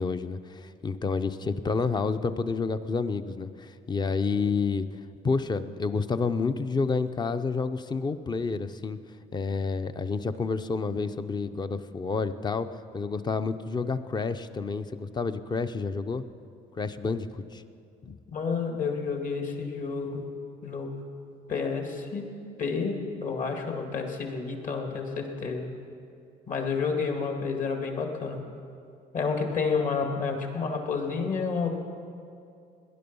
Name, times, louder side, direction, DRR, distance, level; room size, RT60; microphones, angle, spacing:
voice 1, 0.0-4.9 5.2-9.0 9.3-12.7 12.9-16.2 16.8-17.6 18.0-18.2, left 4 dB, 25° left, 11 dB, 0.6 m, -29 dB
voice 2, 18.3-20.2 20.6-20.9 21.5-22.2 22.6-25.7 26.5-28.4 29.1-31.7, left 5 dB, 50° left, 3 dB, 2.2 m, -30 dB
18.0 x 11.0 x 5.4 m, 2.5 s
cardioid pair, 110°, 17 cm